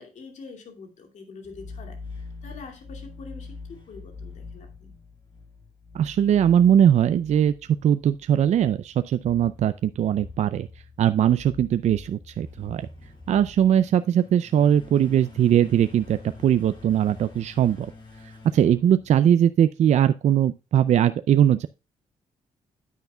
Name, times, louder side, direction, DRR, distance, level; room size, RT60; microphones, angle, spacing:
voice 1, 0.0-5.0, left 4 dB, 70° left, 3 dB, 2.6 m, -45 dB
sound 1, 1.4-19.6, left 3 dB, 40° left, 5.8 m, -45 dB
voice 2, 5.9-7.5 7.8-10.7 11.0-12.9 13.3-17.9 18.5-21.7, right 10 dB, 65° right, 12 dB, 0.4 m, -20 dB
9.5 x 9.2 x 2.3 m, 0.29 s
cardioid pair, 105°, 13 cm